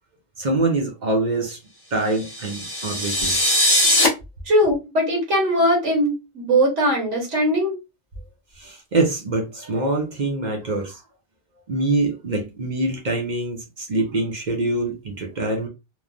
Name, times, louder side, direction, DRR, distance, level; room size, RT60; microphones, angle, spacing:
voice 1, 0.4-1.6 1.9-3.4 8.6-11.0 11.7-15.7, right 2 dB, 50° right, 0.6 m, -24 dB
sound 1, 2.2-4.1, left 1 dB, 25° left, 0.7 m, -20 dB
voice 2, 4.5-7.7, equal, 80° right, 1.4 m, -20 dB
3.0 x 2.1 x 2.3 m
omnidirectional pair, 1.2 m